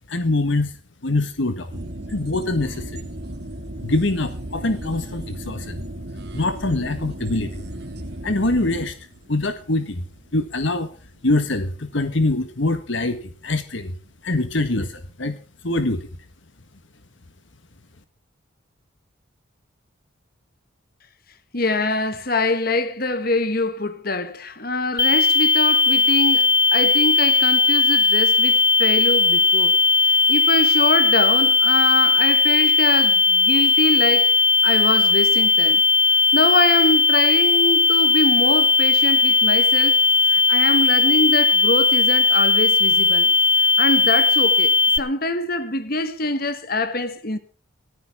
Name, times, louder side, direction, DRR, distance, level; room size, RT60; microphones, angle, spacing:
voice 1, 0.1-0.7 1.0-1.8 2.1-3.1 3.8-5.8 6.3-7.6 8.2-9.0 9.3-10.0 10.3-10.9 11.2-14.0 14.2-15.4 15.6-16.1, left 2 dB, 65° left, 1.5 m, -24 dB
sound 1, 1.7-12.6 12.9-13.0, right 1 dB, 55° right, 2.3 m, -36 dB
voice 2, 21.5-29.8 30.3-34.4 34.6-35.8 36.3-43.3 43.6-47.4, left 2 dB, 45° left, 1.9 m, -24 dB
sound 2, 25.0-45.0, left 4 dB, 20° left, 0.9 m, -17 dB
18.5 x 15.0 x 3.6 m
head